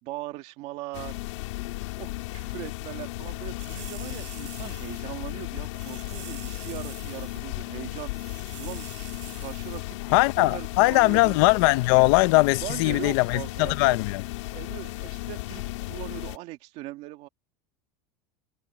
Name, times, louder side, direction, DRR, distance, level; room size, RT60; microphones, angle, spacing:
voice 1, 0.0-1.2 2.0-8.3 8.6-8.9 9.4-11.4 12.6-14.0 14.5-17.3, right 18 dB, 45° right, 1.8 m, -40 dB
sound 1, 0.9-16.4, left 19 dB, 80° left, 2.4 m, -35 dB
sound 2, 3.6-5.0 5.3-5.4 5.7-7.4 7.7-7.8 8.1-9.8 10.1-10.2, right 19 dB, 85° right, 6.5 m, -46 dB
voice 2, 10.1-14.2, left 23 dB, 55° left, 0.7 m, -20 dB
supercardioid pair, 170°, 15 cm